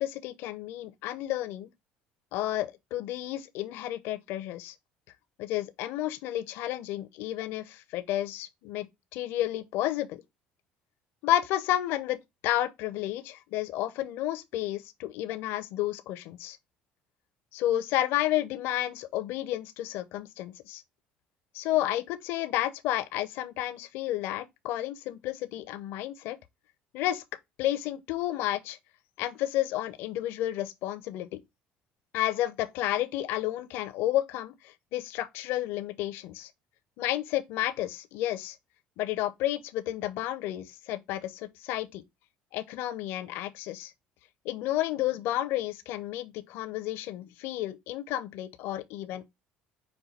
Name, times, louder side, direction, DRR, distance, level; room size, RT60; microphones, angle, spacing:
voice 1, 0.0-1.7 2.3-4.7 5.4-8.9 9.1-10.2 11.2-12.2 12.4-16.6 17.5-20.8 21.5-26.4 26.9-27.2 27.6-28.8 29.2-31.3 32.1-36.5 37.0-38.6 39.0-42.0 42.5-43.9 44.4-49.2, left 13 dB, 75° left, 0.6 m, -31 dB
5.3 x 2.2 x 4.1 m
supercardioid pair, 95°, 4 cm